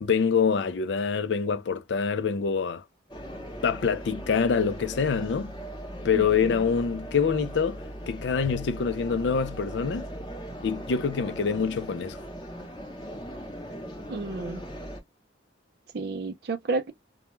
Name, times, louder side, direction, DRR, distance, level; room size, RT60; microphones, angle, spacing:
voice 1, 0.0-2.8 3.6-5.5 6.0-10.1 10.6-12.2, left 6 dB, 70° left, 0.4 m, -26 dB
sound 1, 3.1-15.0, equal, 25° left, 0.8 m, -39 dB
voice 2, 6.1-6.6 14.1-14.6 15.9-16.9, right 3 dB, 60° right, 0.5 m, -31 dB
2.2 x 2.1 x 2.9 m
head